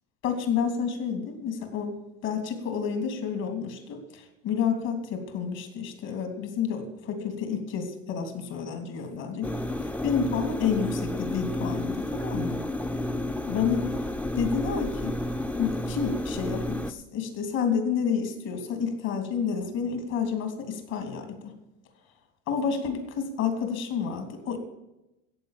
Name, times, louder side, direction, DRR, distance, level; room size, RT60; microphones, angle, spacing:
voice 1, 0.2-2.0 2.2-9.5 9.8-12.6 13.5-13.9 14.3-15.1 15.6-21.5 22.5-24.6, left 6 dB, 60° left, 6 dB, 3.2 m, -30 dB
sound 1, 9.4-16.9, left 1 dB, 5° left, 0.6 m, -31 dB
14.5 x 8.6 x 7.4 m, 0.91 s
supercardioid pair, 125°, 29 cm